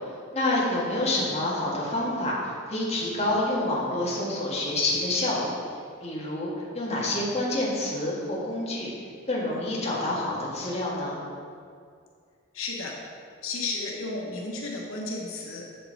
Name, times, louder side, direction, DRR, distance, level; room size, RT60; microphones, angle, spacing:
voice 1, 0.3-5.6 6.0-8.9 9.3-11.2, left 1 dB, 30° left, -6 dB, 1.6 m, -28 dB
voice 2, 12.5-13.0 13.4-15.7, left 3 dB, 85° left, -1 dB, 1.1 m, -33 dB
6.9 x 6.8 x 4.5 m, 2.2 s
head